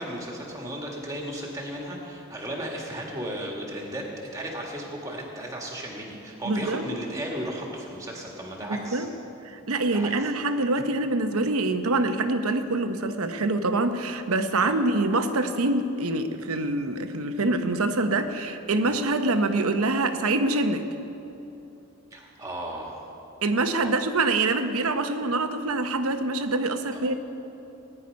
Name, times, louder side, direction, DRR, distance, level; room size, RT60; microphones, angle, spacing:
voice 1, 0.0-4.1 4.3-9.1 9.9-10.3 14.6-14.7 18.8-18.9 22.1-23.1 23.8-24.1 26.9-27.1, right 1 dB, 15° right, -1 dB, 2.0 m, -35 dB
voice 2, 6.5-6.8 8.9-9.1 9.4-20.9 23.4-27.1, right 2 dB, 80° right, 8 dB, 0.9 m, -25 dB
18.5 x 10.0 x 5.3 m, 2.9 s
head